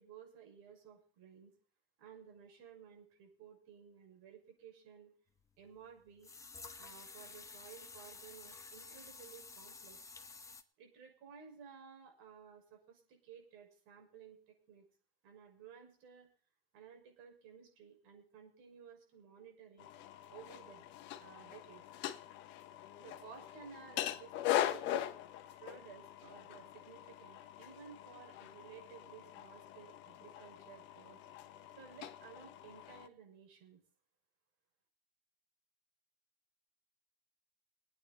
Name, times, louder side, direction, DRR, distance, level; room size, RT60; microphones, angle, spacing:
voice 1, 0.0-1.5 2.0-5.1 5.6-6.3 6.8-10.0 10.8-14.9 15.2-16.3 16.7-19.9 20.3-20.9 21.2-21.8 23.0-25.1 25.5-31.2 31.8-33.8, right 7 dB, 45° right, 3 dB, 6.5 m, -56 dB
sound 1, 5.4-5.5 6.2-10.6, left 4 dB, 10° left, 1.1 m, -52 dB
sound 2, 19.8-33.1, left 12 dB, 40° left, 1.2 m, -42 dB
22.0 x 9.3 x 4.2 m, 0.41 s
hypercardioid pair, 95°, 30 cm